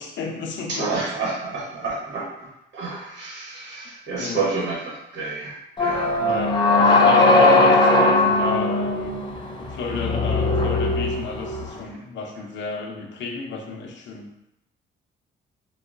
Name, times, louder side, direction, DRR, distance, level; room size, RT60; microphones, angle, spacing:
voice 1, 0.0-1.0 4.2-4.5 6.2-9.2 9.6-14.3, left 4 dB, 65° left, 1 dB, 0.6 m, -33 dB
voice 2, 0.7-2.5 2.7-6.1, right 3 dB, 65° right, -5 dB, 1.1 m, -29 dB
sound 1, 5.8-11.8, left 2 dB, 25° left, 0.4 m, -19 dB
3.6 x 2.0 x 2.4 m, 0.85 s
cardioid pair, 90°, 20 cm